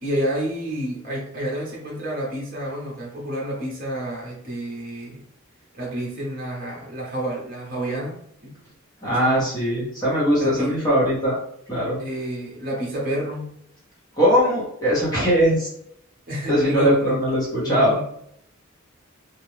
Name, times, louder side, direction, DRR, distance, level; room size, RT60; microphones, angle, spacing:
voice 1, 0.0-5.2 5.7-8.2 8.4-8.5 9.0-9.5 10.4-10.8 12.0-13.5 16.3-17.1 17.6-18.0, equal, 40° right, -3 dB, 0.8 m, -29 dB
voice 2, 9.0-11.4 11.7-12.0 14.1-15.7 16.5-18.0, equal, 15° left, -7 dB, 1.0 m, -20 dB
2.5 x 2.2 x 3.1 m, 0.69 s
head